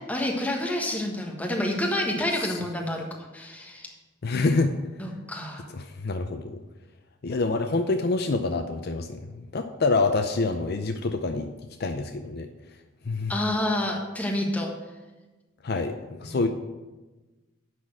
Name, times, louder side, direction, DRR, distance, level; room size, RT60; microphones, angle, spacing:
voice 1, 0.1-3.0 3.3-3.9 5.0-5.6 13.3-14.7 16.3-16.4, left 1 dB, 10° left, 0 dB, 1.4 m, -28 dB
voice 2, 4.2-4.7 5.7-6.6 7.2-11.5 11.8-12.5 13.1-13.3 15.6-15.9 16.2-16.5, left 3 dB, 50° left, 7 dB, 0.5 m, -26 dB
11.0 x 4.2 x 7.6 m, 1.2 s
head